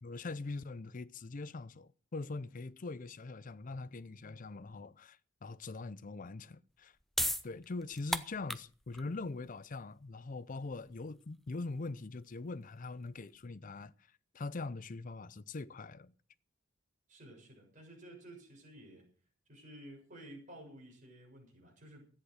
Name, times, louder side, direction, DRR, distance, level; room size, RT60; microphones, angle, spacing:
voice 1, 0.0-7.0 7.4-13.9 14.3-16.1, left 3 dB, 40° left, 0.5 m, -42 dB
sound 1, 6.7-13.5, left 1 dB, ahead, 0.6 m, -40 dB
voice 2, 17.1-19.1 19.5-22.1, right 1 dB, 40° right, 6.9 m, -53 dB
13.5 x 10.0 x 6.4 m
head